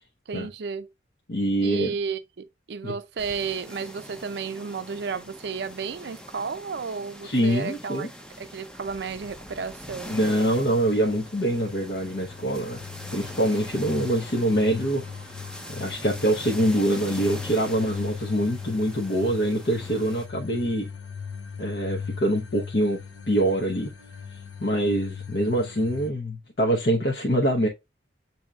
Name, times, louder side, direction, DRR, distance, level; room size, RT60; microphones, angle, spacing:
voice 1, 0.3-0.9 1.6-8.1 8.4-10.2, right 5 dB, 60° right, 0.4 m, -33 dB
voice 2, 1.3-1.9 2.8-2.9 7.2-8.1 10.1-12.8 13.1-15.0 15.7-20.9 21.6-23.0 23.3-23.9 24.6-27.7, right 1 dB, 55° left, 0.8 m, -24 dB
sound 1, 3.2-20.3, equal, 5° left, 0.5 m, -43 dB
sound 2, 9.8-26.1, left 6 dB, 85° left, 0.7 m, -40 dB
7.8 x 2.8 x 2.3 m
head